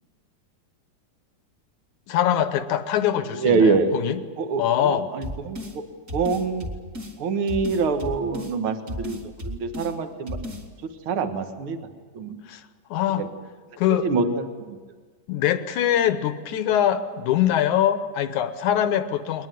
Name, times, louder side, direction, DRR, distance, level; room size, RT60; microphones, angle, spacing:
voice 1, 2.1-4.2 4.6-5.1 12.5-12.6 12.9-13.2 13.8-14.1 15.3-19.5, left 10 dB, 65° left, 11 dB, 2.2 m, -23 dB
voice 2, 3.3-3.9 4.4-5.8 6.1-6.7 7.2-10.4 11.1-11.8 12.1-12.4 13.2-13.3 14.0-14.8, right 4 dB, 45° right, 7 dB, 1.9 m, -25 dB
sound 1, 5.2-5.8 6.1-7.2 7.5-8.5 8.9-9.9 10.3-10.6, left 1 dB, 25° right, 2.6 m, -34 dB
22.0 x 21.0 x 9.3 m, 1.5 s
omnidirectional pair, 4.1 m